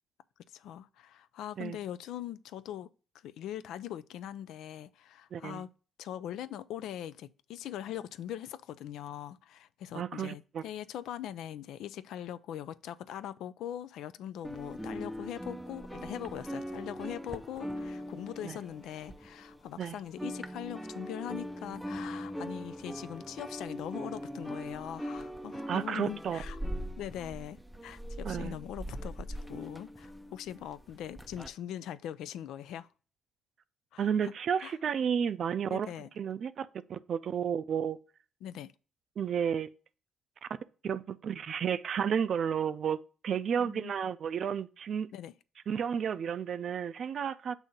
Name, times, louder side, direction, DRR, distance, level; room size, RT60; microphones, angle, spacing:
voice 1, 0.5-2.9 3.2-5.7 6.0-26.6 27.0-32.9 33.9-34.3 34.6-34.8 35.7-36.1 38.4-38.7 43.6-43.9 45.1-45.3, left 11 dB, 85° left, 0.3 m, -41 dB
voice 2, 5.3-5.6 9.9-10.6 18.4-18.6 19.8-20.0 25.7-26.4 28.2-28.6 34.0-35.9 36.2-38.0 39.2-39.7 40.8-43.0 43.2-45.1 45.7-47.5, right 7 dB, 60° right, 0.4 m, -32 dB
sound 1, 14.4-19.8 20.0-31.5, equal, ahead, 0.5 m, -41 dB
7.0 x 2.7 x 5.1 m
cardioid pair, 90°, 0 cm